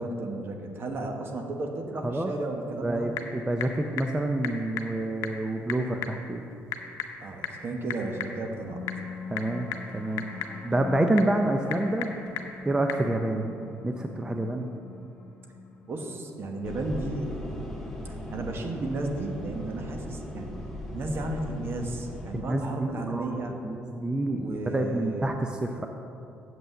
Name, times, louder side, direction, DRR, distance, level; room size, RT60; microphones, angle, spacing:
voice 1, 0.0-3.1 7.2-8.9 13.3-13.5 15.8-17.3 18.1-20.6 20.9-23.6 24.3-25.3, right 2 dB, 50° right, 3 dB, 1.2 m, -33 dB
Typing / Telephone, 2.6-13.1, left 8 dB, 85° left, 0.7 m, -39 dB
voice 2, 2.8-6.4 9.3-9.7 9.9-12.1 12.7-13.5 13.8-14.7 22.3-25.9, right 1 dB, 15° right, 4 dB, 0.5 m, -28 dB
sound 1, 8.3-19.2, left 5 dB, 35° left, 1.4 m, -44 dB
sound 2, 16.6-22.4, left 1 dB, 5° left, 1.7 m, -38 dB
7.7 x 5.5 x 7.3 m, 2.7 s
cardioid pair, 85°, 5 cm